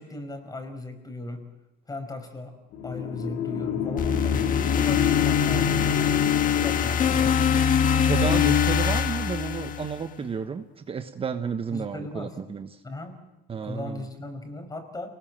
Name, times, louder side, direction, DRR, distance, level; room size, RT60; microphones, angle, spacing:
voice 1, 0.0-1.5 1.9-2.6 2.8-6.2 6.5-7.9 11.7-12.4 12.8-13.2 13.6-15.1, left 2 dB, 20° left, 8 dB, 5.3 m, -37 dB
sound 1, 2.7-7.7, left 8 dB, 85° left, 2.0 m, -29 dB
sound 2, 4.0-10.1, left 7 dB, 55° left, 1.5 m, -23 dB
voice 2, 8.1-12.8 13.5-14.0, right 6 dB, 35° right, 8 dB, 1.3 m, -31 dB
29.0 x 19.5 x 7.6 m, 0.96 s
cardioid pair, 110°, 17 cm